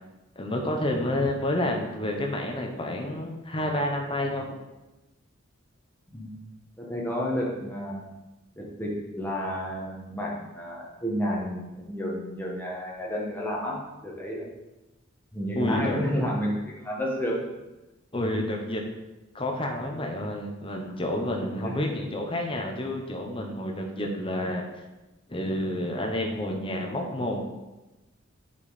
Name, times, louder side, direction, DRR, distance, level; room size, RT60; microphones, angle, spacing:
voice 1, 0.4-4.4 15.5-16.0 18.1-18.8 19.3-24.6 25.3-27.4, left 1 dB, 25° left, 1 dB, 1.1 m, -29 dB
voice 2, 6.8-8.0 8.6-14.5 15.3-17.4 21.6-21.9, equal, 10° left, -3 dB, 1.6 m, -31 dB
8.1 x 5.5 x 4.2 m, 1.0 s
head